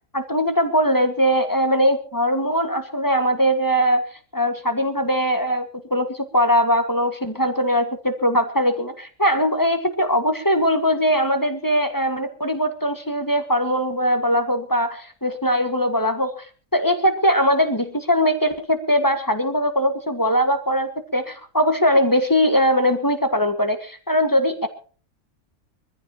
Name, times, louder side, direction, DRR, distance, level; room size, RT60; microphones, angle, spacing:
voice 1, 0.1-4.0 4.3-16.5 16.7-24.7, equal, 15° left, 7 dB, 1.8 m, -21 dB
24.0 x 15.0 x 3.0 m, 0.40 s
omnidirectional pair, 1.4 m